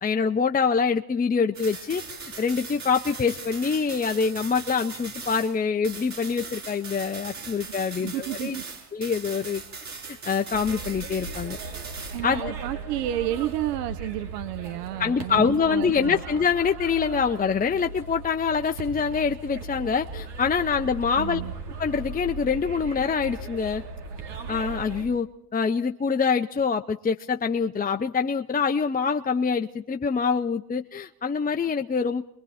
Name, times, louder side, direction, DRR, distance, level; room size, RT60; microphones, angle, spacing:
voice 1, 0.0-2.0 2.4-8.6 8.9-9.6 10.2-11.6 12.2-12.5 15.0-21.4 21.8-23.8 24.5-25.3 25.5-32.2, left 5 dB, 20° left, 6 dB, 0.9 m, -25 dB
sound 1, 1.5-5.6 5.8-12.2, right 4 dB, 35° right, 6.9 m, -39 dB
voice 2, 8.0-8.6 12.1-16.2 21.2-21.5, right 13 dB, 80° right, 11 dB, 1.3 m, -31 dB
sound 2, 10.5-25.1, right 3 dB, 60° right, 6.1 m, -38 dB
27.5 x 22.5 x 4.4 m, 0.75 s
hypercardioid pair, 80°, 47 cm